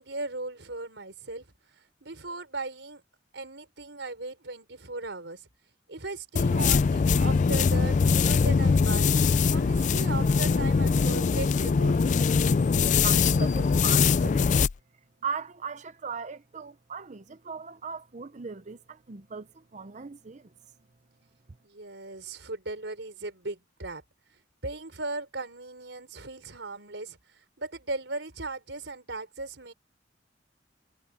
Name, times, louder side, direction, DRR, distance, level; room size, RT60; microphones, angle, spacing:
voice 1, 0.0-3.0 3.3-5.5 5.9-8.0 8.2-9.2 9.5-12.3 21.6-24.0 24.6-29.7, right 2 dB, 80° right, 4.5 m, -37 dB
sound 1, 6.4-14.7, left 5 dB, 40° left, 0.4 m, -22 dB
voice 2, 12.7-14.5 15.2-20.5, right 5 dB, 40° right, 0.7 m, -38 dB
head